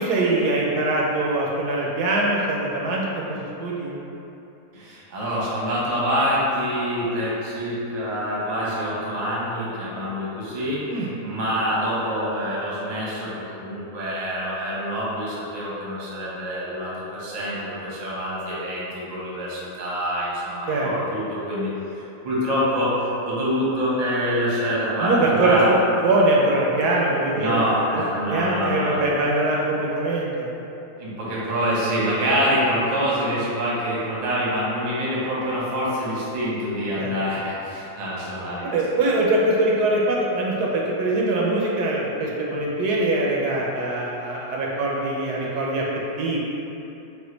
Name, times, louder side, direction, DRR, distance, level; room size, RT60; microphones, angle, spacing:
voice 1, 0.0-4.0 10.9-11.1 20.7-20.9 25.0-27.6 27.9-30.5 37.0-37.1 38.6-45.8 46.2-46.4, right 2 dB, 75° right, -3 dB, 1.1 m, -22 dB
voice 2, 4.7-25.7 27.3-29.0 31.0-38.7 39.0-39.2, equal, 35° right, -7 dB, 0.7 m, -26 dB
4.2 x 2.5 x 3.8 m, 3.0 s
omnidirectional pair, 1.8 m